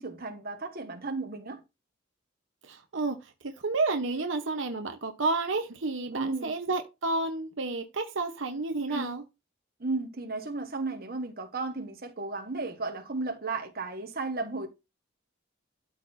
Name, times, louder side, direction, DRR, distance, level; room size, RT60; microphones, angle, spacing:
voice 1, 0.0-1.6 6.1-6.5 8.9-9.2 9.8-14.7, right 3 dB, 55° right, 1.4 m, -34 dB
voice 2, 2.6-9.2, right 3 dB, 80° right, 1.0 m, -31 dB
12.5 x 4.3 x 2.7 m
head